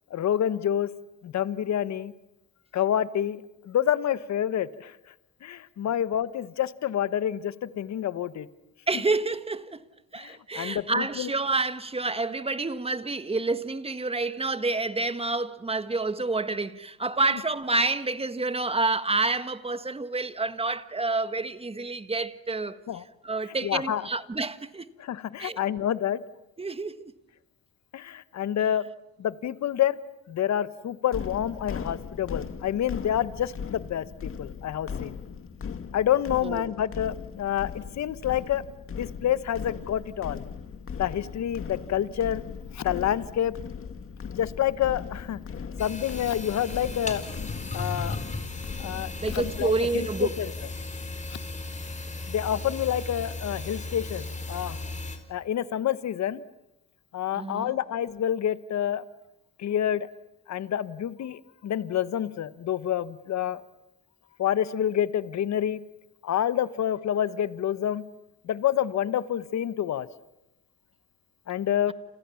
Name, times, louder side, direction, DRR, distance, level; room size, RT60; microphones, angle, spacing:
voice 1, 0.1-0.9 1.2-2.1 2.7-3.4 3.6-5.0 5.4-8.5 10.2-11.3 22.9-23.0 23.6-24.0 25.0-26.2 27.9-28.8 29.2-30.0 30.3-35.2 35.9-38.6 38.9-40.4 41.0-42.4 42.7-43.6 44.2-45.4 45.8-47.2 47.7-48.2 48.8-50.5 52.3-54.8 55.3-56.4 57.1-59.0 59.6-60.1 60.5-63.6 64.4-65.8 66.2-68.0 68.4-70.1 71.5-71.9, left 10 dB, 65° left, 1.3 m, -28 dB
voice 2, 8.9-9.8 10.1-22.8 23.2-24.9 25.4-25.6 26.6-27.1 36.4-36.7 49.2-50.3 57.3-57.7, right 3 dB, 20° right, 1.6 m, -28 dB
sound 1, 31.1-49.7, left 6 dB, 45° left, 2.4 m, -38 dB
sound 2, 45.8-55.2, left 2 dB, 25° left, 4.8 m, -36 dB
29.5 x 28.0 x 7.2 m
cardioid pair, 90°, 30 cm